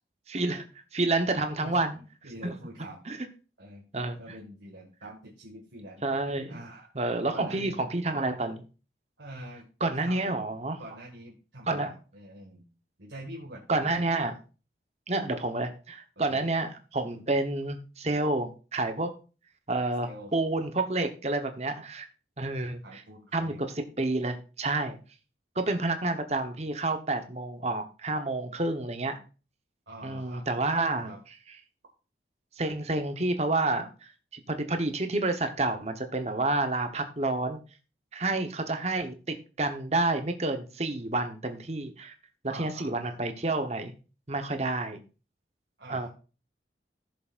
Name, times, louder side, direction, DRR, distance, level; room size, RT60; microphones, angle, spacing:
voice 1, 0.3-0.6 0.9-2.0 2.4-2.5 3.1-3.2 3.9-4.2 6.0-6.6 6.9-8.6 9.8-10.8 11.7-11.9 13.7-14.3 15.1-19.1 19.7-22.1 22.4-23.0 23.3-25.0 25.5-29.2 30.0-31.1 32.6-33.9 34.3-37.6 38.1-42.1 42.6-43.9 44.3-45.0 45.9-46.1, right 2 dB, 35° right, 7 dB, 1.0 m, -29 dB
voice 2, 1.6-3.0 3.6-3.8 4.2-6.0 6.5-6.9 7.3-7.8 9.2-9.7 10.0-10.2 10.8-12.6 13.0-14.0 16.2-16.5 20.0-20.3 22.8-23.6 29.9-30.5 31.0-31.2 42.5-43.2 45.8-46.1, right 1 dB, 80° right, -2 dB, 1.7 m, -45 dB
15.0 x 6.7 x 2.5 m, 0.33 s
head